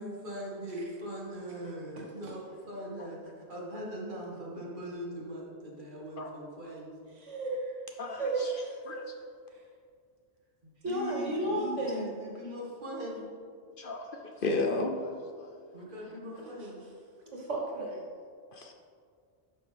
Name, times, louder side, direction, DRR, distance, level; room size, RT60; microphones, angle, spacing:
voice 1, 0.0-6.9 10.6-13.4 15.7-16.9, equal, 45° right, -3 dB, 1.8 m, -41 dB
voice 2, 7.2-7.7 8.2-8.8 10.8-12.1 17.3-18.0, right 2 dB, 85° right, -2 dB, 1.9 m, -33 dB
voice 3, 8.0-9.1 11.1-11.2 13.8-15.5 18.5-18.7, left 2 dB, 55° left, 3 dB, 0.8 m, -34 dB
11.0 x 5.9 x 3.4 m, 2.2 s
omnidirectional pair, 1.2 m